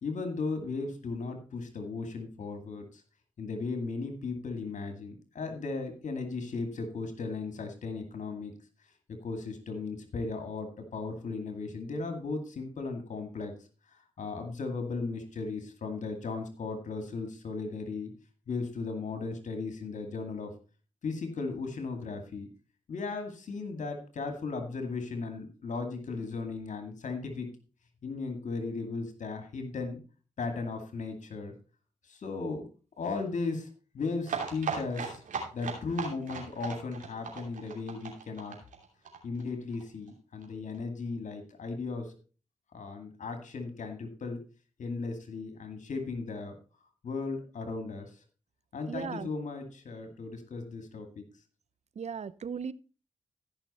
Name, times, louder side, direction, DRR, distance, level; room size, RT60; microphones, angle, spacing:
voice 1, 0.0-3.0 3.4-8.5 9.2-13.5 14.2-18.1 18.5-20.5 21.0-22.5 22.9-27.5 28.0-30.0 30.4-31.5 32.1-32.7 33.0-33.7 33.9-35.2 35.5-38.6 39.2-42.1 42.7-44.4 44.8-46.5 47.0-48.2 48.7-51.2, left 4 dB, 70° left, 6 dB, 2.2 m, -36 dB
sound 1, 34.2-39.8 40.1-40.2 40.4-40.5 40.7-40.8, right 6 dB, 80° right, 2.9 m, -37 dB
voice 2, 48.9-49.3 52.0-52.7, right 6 dB, 60° right, 18 dB, 0.7 m, -36 dB
14.5 x 6.1 x 4.2 m, 0.35 s
supercardioid pair, 40°, 13 cm